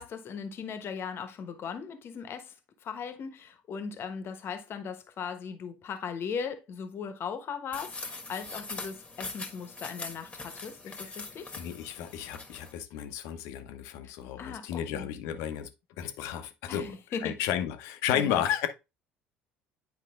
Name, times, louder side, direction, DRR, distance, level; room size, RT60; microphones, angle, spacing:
voice 1, 0.0-2.5 2.8-11.5 14.0-14.1 14.4-15.1 16.7-17.4 18.1-18.4, left 6 dB, 45° left, 1.1 m, -38 dB
sound 1, 7.7-12.7, left 3 dB, 20° left, 1.4 m, -42 dB
voice 2, 11.6-15.7 16.0-18.7, left 10 dB, 60° left, 0.8 m, -33 dB
9.3 x 4.9 x 2.4 m
figure-of-eight pair, 60°, 6 cm